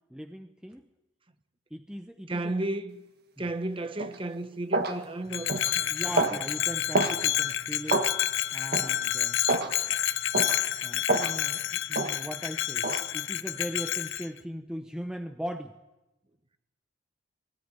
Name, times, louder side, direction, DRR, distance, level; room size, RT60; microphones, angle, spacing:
voice 1, 0.1-0.8 1.7-2.5 3.4-3.5 5.9-8.0 8.5-9.4 10.8-12.9 13.1-15.7, equal, 5° right, 0.7 m, -39 dB
voice 2, 2.3-3.0 3.4-6.2, right 2 dB, 25° right, 1.1 m, -33 dB
sound 1, 4.0-4.2 4.7-5.0 5.5-5.7 6.2-6.4 6.9-7.2 7.9-8.1 8.7-8.9 9.5-9.7 10.3-10.6 11.1-11.3 11.9-12.1 12.8-13.0, right 2 dB, 50° right, 1.7 m, -27 dB
Bell, 5.3-14.3, left 12 dB, 70° left, 0.8 m, -29 dB
20.5 x 17.5 x 9.7 m
head